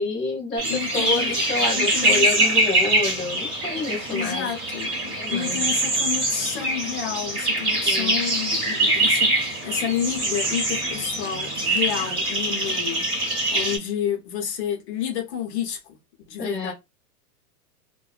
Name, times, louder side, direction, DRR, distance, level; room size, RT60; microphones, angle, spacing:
voice 1, 0.0-4.5 5.1-5.7 7.8-8.2 16.4-16.7, left 3 dB, ahead, 0.6 m, -28 dB
voice 2, 0.5-2.7 4.1-16.0 16.3-16.7, left 9 dB, 45° left, 0.7 m, -30 dB
sound 1, 0.6-13.8, right 1 dB, 20° right, 0.9 m, -24 dB
2.6 x 2.1 x 2.4 m
supercardioid pair, 160°, 47 cm